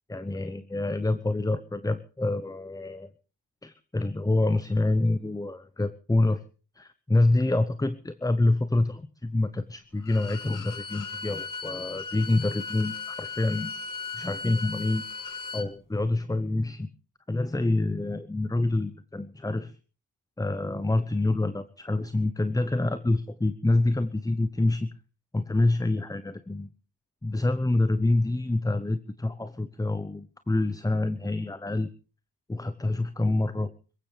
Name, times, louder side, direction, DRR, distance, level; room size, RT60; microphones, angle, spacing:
voice 1, 0.1-3.1 3.6-6.4 6.7-13.7 14.1-15.0 15.5-16.9 17.3-19.8 20.4-24.9 25.3-26.7 27.2-31.9 32.5-33.7, left 2 dB, 10° left, 13 dB, 0.7 m, -27 dB
Bowed string instrument, 10.0-15.7, left 4 dB, 50° left, 1.9 m, -37 dB
24.0 x 15.0 x 3.3 m, 0.36 s
cardioid pair, 55°, 40 cm